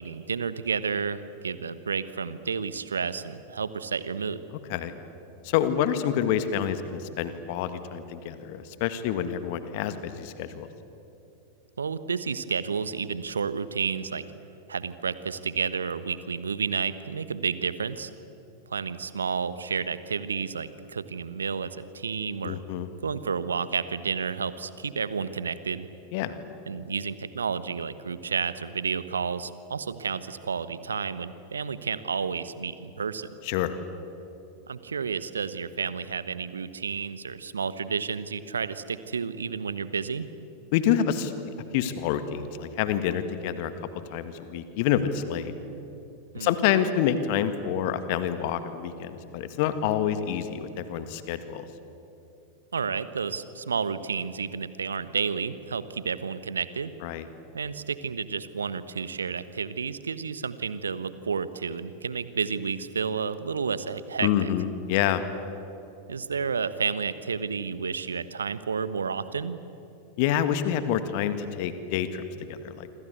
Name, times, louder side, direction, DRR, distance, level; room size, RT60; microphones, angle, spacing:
voice 1, 0.0-4.4 11.8-14.2 14.7-18.1 18.7-22.6 23.0-25.9 26.7-33.3 34.7-40.3 46.3-46.5 52.7-56.9 57.5-64.5 66.1-69.6, right 5 dB, 70° right, 15 dB, 1.2 m, -31 dB
voice 2, 5.4-10.7 22.4-22.9 26.1-26.4 33.4-33.8 40.7-41.3 41.7-43.7 44.1-45.5 46.4-51.7 57.0-57.3 64.2-65.2 70.2-72.9, left 10 dB, 45° left, 11 dB, 1.8 m, -27 dB
28.0 x 25.5 x 8.2 m, 2.9 s
figure-of-eight pair, 90°, 0 cm